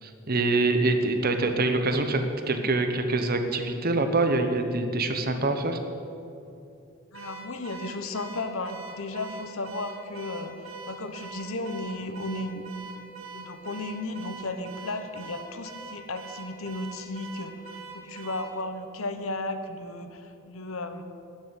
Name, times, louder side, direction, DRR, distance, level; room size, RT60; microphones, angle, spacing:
voice 1, 0.0-5.8, right 2 dB, 45° right, 7 dB, 1.1 m, -25 dB
voice 2, 7.1-10.5 10.9-12.6 13.3-21.0, left 2 dB, 70° left, 8 dB, 1.1 m, -34 dB
Car / Alarm, 7.1-18.6, right 4 dB, 70° right, 1.6 m, -43 dB
12.0 x 7.8 x 9.9 m, 2.7 s
head